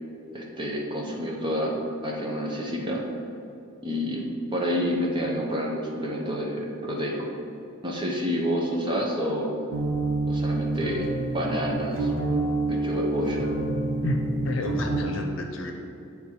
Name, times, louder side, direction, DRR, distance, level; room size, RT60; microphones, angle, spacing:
voice 1, 0.3-1.7 2.0-3.0 3.8-4.2 4.5-7.3 7.8-9.5 10.3-11.1 11.3-12.1 12.7-13.5, equal, 20° right, -1 dB, 0.8 m, -28 dB
sound 1, 9.7-15.0, right 2 dB, 60° right, 0.9 m, -28 dB
voice 2, 14.0-15.7, left 1 dB, 60° left, 2 dB, 0.8 m, -30 dB
8.6 x 3.6 x 4.5 m, 2.8 s
head